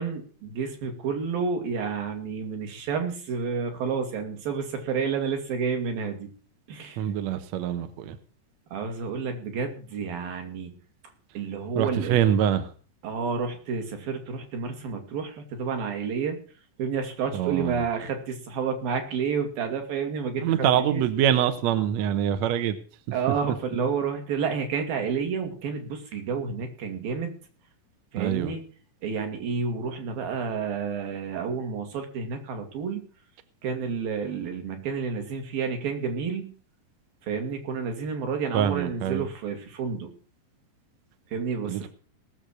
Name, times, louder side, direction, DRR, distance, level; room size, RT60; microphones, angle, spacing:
voice 1, 0.0-6.3 6.7-7.1 8.7-10.7 11.4-12.2 13.0-16.4 16.8-21.0 23.1-27.4 28.1-28.6 29.0-33.1 33.6-36.5 37.2-40.1 41.3-41.9, right 5 dB, 85° right, 5 dB, 4.2 m, -30 dB
voice 2, 7.0-8.2 11.8-12.7 17.3-17.8 20.4-22.8 28.2-28.5 38.5-39.2 41.7-41.9, right 10 dB, 65° right, 10 dB, 2.1 m, -25 dB
18.5 x 7.3 x 6.5 m, 0.41 s
omnidirectional pair, 4.0 m